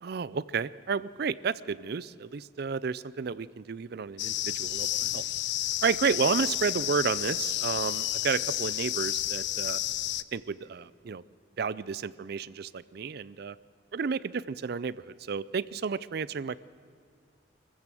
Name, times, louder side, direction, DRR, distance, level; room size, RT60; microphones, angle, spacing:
voice 1, 0.0-5.2 5.8-9.8 10.3-11.2 11.6-13.6 13.9-16.6, right 5 dB, 55° right, 18 dB, 0.4 m, -31 dB
sound 1, 4.2-10.2, left 14 dB, 65° left, 0.5 m, -31 dB
24.0 x 15.0 x 7.6 m, 2.2 s
head